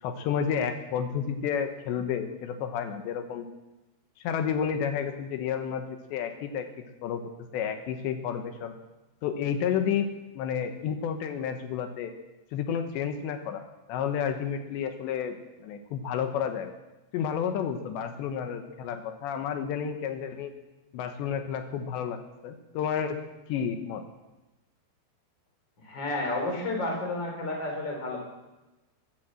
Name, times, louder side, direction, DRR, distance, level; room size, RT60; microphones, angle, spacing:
voice 1, 0.0-3.5 4.2-6.7 7.0-7.2 7.5-8.7 9.2-10.1 10.4-12.1 12.5-13.6 13.9-15.4 15.6-16.7 17.1-20.5 20.9-22.2 22.4-23.2 23.5-24.0, left 8 dB, 85° left, 7 dB, 3.3 m, -31 dB
voice 2, 25.8-28.2, left 2 dB, 25° left, 1 dB, 4.1 m, -31 dB
14.5 x 12.0 x 7.6 m, 1.0 s
omnidirectional pair, 5.0 m